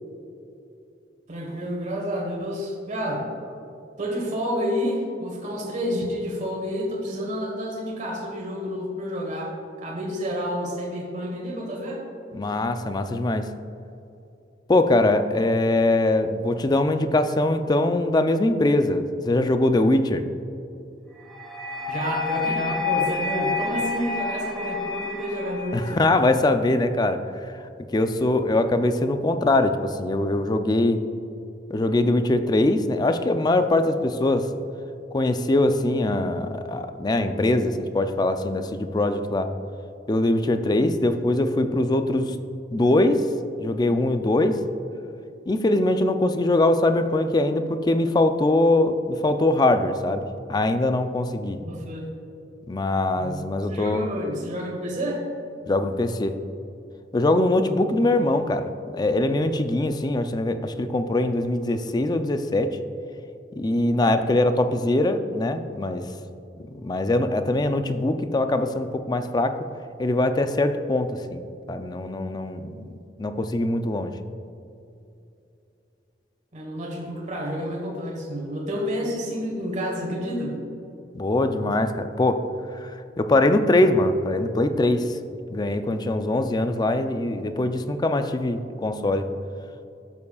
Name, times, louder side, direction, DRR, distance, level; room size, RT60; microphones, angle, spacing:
voice 1, 1.3-3.3 4.0-12.0 21.9-26.0 51.6-52.1 53.2-55.2 58.0-58.1 76.5-80.6, equal, 45° right, -2 dB, 1.4 m, -29 dB
voice 2, 12.3-13.5 14.7-20.2 25.7-27.5 27.9-31.1 31.7-34.5 35.1-39.5 40.1-42.3 42.7-43.3 43.6-44.6 45.5-51.6 52.7-54.1 55.7-56.4 57.1-58.7 58.9-62.8 63.5-66.1 66.8-69.6 70.0-72.9 73.2-74.1 81.1-82.4 82.8-82.9 83.2-85.2 85.5-89.3, left 2 dB, 25° left, 8 dB, 0.4 m, -22 dB
sound 1, 21.3-26.3, left 4 dB, ahead, 1.2 m, -29 dB
13.0 x 7.0 x 2.4 m, 2.7 s
head